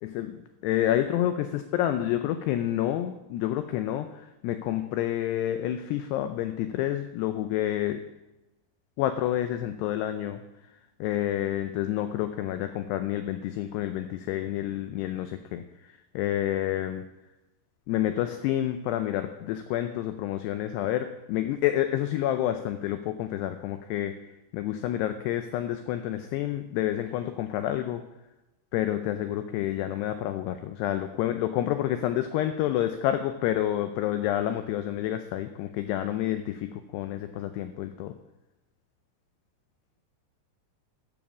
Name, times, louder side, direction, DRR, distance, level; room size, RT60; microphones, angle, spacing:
voice 1, 0.0-8.0 9.0-10.4 11.0-15.6 16.2-17.0 17.9-24.2 24.5-28.0 28.7-38.1, left 12 dB, 85° left, 9 dB, 2.4 m, -29 dB
14.0 x 7.2 x 6.1 m, 1.0 s
omnidirectional pair, 5.5 m